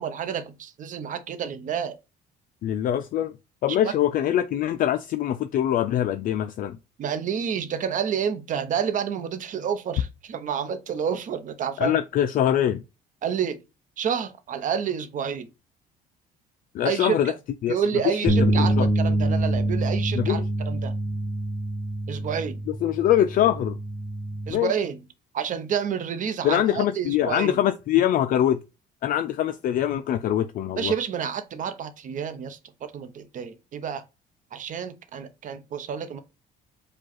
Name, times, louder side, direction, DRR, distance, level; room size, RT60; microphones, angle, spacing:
voice 1, 0.0-2.0 3.8-3.9 7.0-11.9 13.2-13.6 14.0-15.5 16.8-17.3 17.7-20.9 22.1-22.6 24.5-25.0 25.3-27.6 30.8-34.0 34.5-36.2, right 7 dB, 50° right, 0.8 m, -29 dB
voice 2, 2.6-3.3 3.6-6.8 11.8-12.8 16.7-17.3 17.6-17.7 18.0-18.9 20.1-20.5 22.7-23.8 24.5-24.7 26.4-28.6 29.0-30.9, left 11 dB, 55° left, 0.4 m, -23 dB
sound 1, 18.3-24.5, right 1 dB, ahead, 0.7 m, -25 dB
5.0 x 2.3 x 4.0 m
cardioid pair, 110°, 17 cm